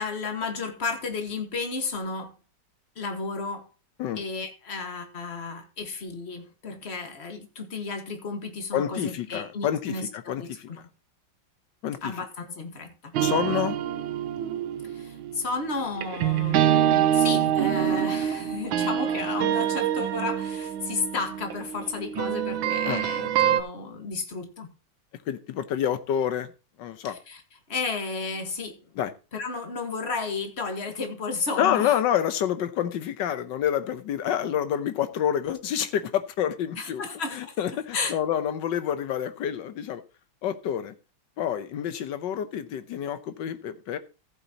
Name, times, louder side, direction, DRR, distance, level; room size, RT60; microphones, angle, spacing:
voice 1, 0.0-2.3 3.0-3.7 4.2-10.5 12.0-13.1 14.8-24.7 27.1-27.4 27.7-28.8 29.3-32.0 36.8-38.1, left 4 dB, 35° left, 1.7 m, -33 dB
voice 2, 8.7-10.8 11.8-12.1 13.2-13.8 22.9-23.1 25.3-26.5 26.8-27.2 29.0-29.1 31.6-37.0 37.3-40.0 40.4-40.9 41.4-44.0, left 10 dB, 70° left, 1.5 m, -28 dB
sound 1, 13.1-23.6, right 10 dB, 80° right, 1.5 m, -26 dB
14.5 x 8.1 x 2.9 m
omnidirectional pair, 2.2 m